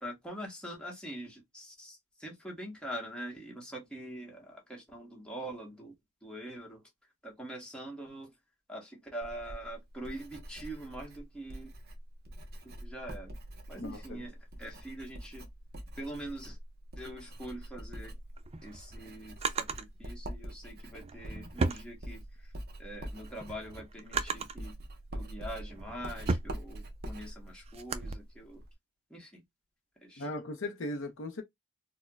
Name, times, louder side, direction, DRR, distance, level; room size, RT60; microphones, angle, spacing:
voice 1, 0.0-5.9 6.2-6.8 7.2-8.3 8.7-11.7 12.6-13.3 13.7-15.5 16.0-16.6 17.0-18.2 18.6-22.5 22.8-24.7 25.1-28.6 29.1-29.4 30.0-30.3, right 1 dB, 5° left, 1.0 m, -44 dB
Writing, 9.2-28.7, right 1 dB, 45° right, 0.8 m, -45 dB
voice 2, 13.8-14.2 30.2-31.4, left 2 dB, 60° left, 0.6 m, -38 dB
Drawer open or close, 18.2-19.9 20.9-22.5 23.0-24.7 25.3-28.1, right 4 dB, 30° right, 0.3 m, -36 dB
4.3 x 2.1 x 2.2 m
head